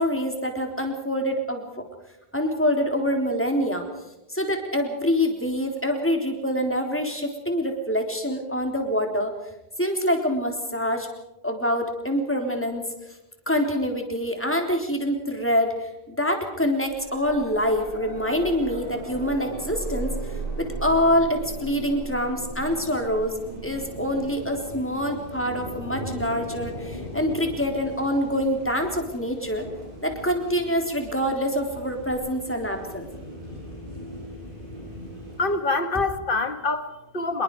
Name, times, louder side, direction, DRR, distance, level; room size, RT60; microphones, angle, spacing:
voice 1, 0.0-1.8 2.3-3.8 4.3-9.3 9.8-11.1 11.4-12.8 13.5-20.1 20.6-23.4 23.6-29.7 30.0-33.1, equal, 10° left, 3 dB, 3.8 m, -25 dB
sound 1, 16.9-29.8 32.1-32.2, right 2 dB, 40° right, 3.7 m, -38 dB
sound 2, 18.1-35.6, equal, 55° right, 7.8 m, -40 dB
voice 2, 35.4-37.4, left 3 dB, 55° left, 9 dB, 2.0 m, -25 dB
26.5 x 22.0 x 4.9 m, 0.94 s
omnidirectional pair, 1.1 m